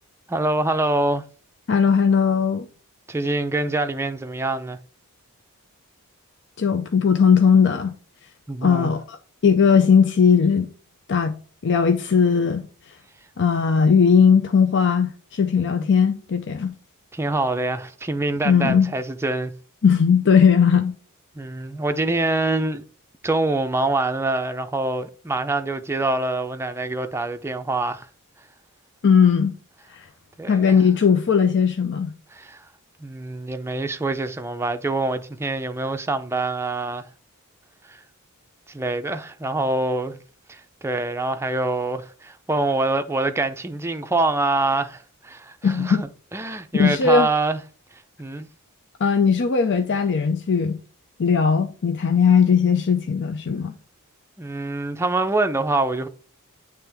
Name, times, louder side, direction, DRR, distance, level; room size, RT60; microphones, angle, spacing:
voice 1, 0.3-1.2 3.1-4.8 8.5-8.9 15.8-15.9 17.1-19.6 21.4-22.8 23.2-28.1 30.4-30.8 32.3-32.6 33.0-37.1 37.9-38.0 38.7-40.2 40.5-47.6 48.2-48.5 54.4-56.1, right 2 dB, 10° right, 0.5 m, -25 dB
voice 2, 1.7-2.7 6.6-7.9 8.6-9.2 9.4-10.7 11.1-11.4 11.6-12.7 13.4-16.7 18.4-18.9 19.8-20.9 29.0-29.5 29.9-30.1 30.5-32.1 45.6-46.0 46.7-47.3 49.0-50.8 51.2-53.7, left 6 dB, 55° left, 0.5 m, -18 dB
9.0 x 3.4 x 3.4 m
head